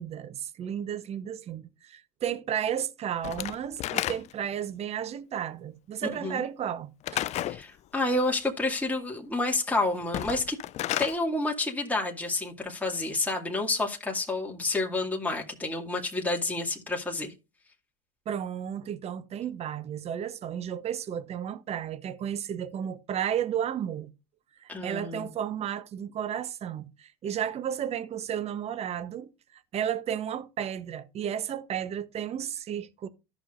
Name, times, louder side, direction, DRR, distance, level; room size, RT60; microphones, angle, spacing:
voice 1, 0.0-7.2 18.3-24.1 24.6-33.1, right 9 dB, 35° right, 0.9 m, -33 dB
Slam / Wood, 3.2-4.5 7.0-7.6 10.0-11.2, left 13 dB, 40° left, 0.4 m, -31 dB
voice 2, 7.5-10.6 11.0-17.3 24.7-25.3, left 2 dB, 10° left, 2.1 m, -29 dB
13.5 x 6.2 x 2.5 m
hypercardioid pair, 90°, 18 cm